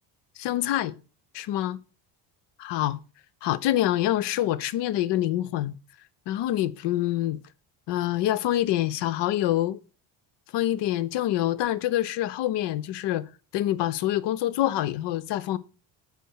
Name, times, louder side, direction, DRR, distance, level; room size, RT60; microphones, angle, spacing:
voice 1, 0.4-1.0 1.3-1.8 2.6-3.0 3.4-5.8 6.3-7.4 7.9-9.8 10.5-15.6, left 13 dB, 65° left, 0.7 m, -26 dB
6.4 x 5.1 x 6.3 m
cardioid pair, 105°, 46 cm